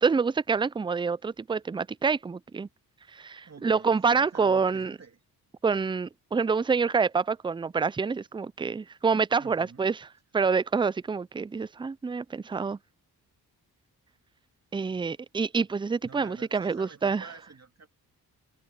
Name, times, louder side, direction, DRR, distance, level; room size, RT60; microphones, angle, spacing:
voice 1, 0.0-2.7 3.1-5.0 5.6-9.9 10.3-12.8 14.7-17.2, right 5 dB, 15° right, 0.3 m, -27 dB
voice 2, 3.4-5.2 9.4-9.9 16.0-17.9, right 5 dB, 40° right, 2.5 m, -49 dB
cardioid pair, 70°, 40 cm